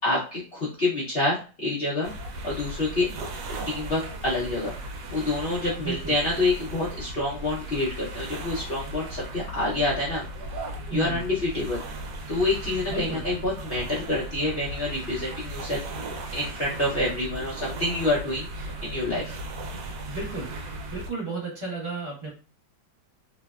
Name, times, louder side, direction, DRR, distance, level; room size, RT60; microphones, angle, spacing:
voice 1, 0.0-2.1 2.4-3.1 3.7-4.7 5.1-10.2 10.9-11.8 12.3-15.8 16.3-19.4, left 2 dB, 85° left, -7 dB, 0.5 m, -27 dB
sound 1, 2.0-21.1, right 1 dB, 70° right, 1.1 m, -37 dB
voice 2, 5.8-6.1 10.9-11.2 12.9-13.2 20.1-20.5 20.9-22.3, right 4 dB, 35° right, -5 dB, 0.5 m, -33 dB
3.1 x 2.1 x 2.3 m, 0.35 s
omnidirectional pair, 2.0 m